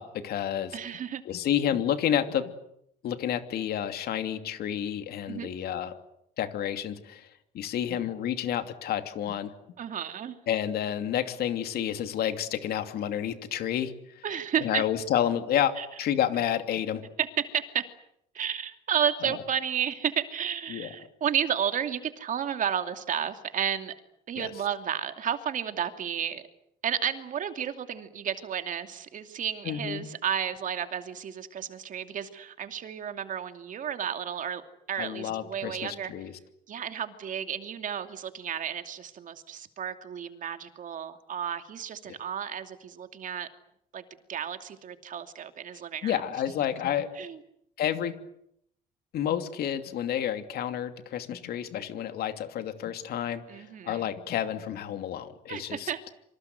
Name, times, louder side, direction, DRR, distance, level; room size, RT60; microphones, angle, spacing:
voice 1, 0.0-0.8 1.2-2.5 3.0-5.9 6.4-7.3 7.5-9.5 10.5-14.2 14.6-17.0 19.2-19.4 20.7-20.9 24.4-24.5 29.6-30.1 35.0-36.3 42.1-42.2 46.0-47.1 47.8-48.1 49.1-55.9, left 10 dB, 70° left, 8 dB, 2.8 m, -30 dB
voice 2, 0.7-1.2 5.3-5.5 9.8-10.4 14.2-14.8 15.8-15.9 17.5-17.8 18.3-23.9 24.3-26.5 26.8-34.6 34.9-36.1 36.7-43.5 43.9-44.0 44.3-46.2 47.2-47.4 53.5-54.1 55.5-56.0, right 8 dB, 50° right, 8 dB, 2.7 m, -32 dB
26.5 x 25.0 x 8.0 m, 0.76 s
cardioid pair, 110°, 17 cm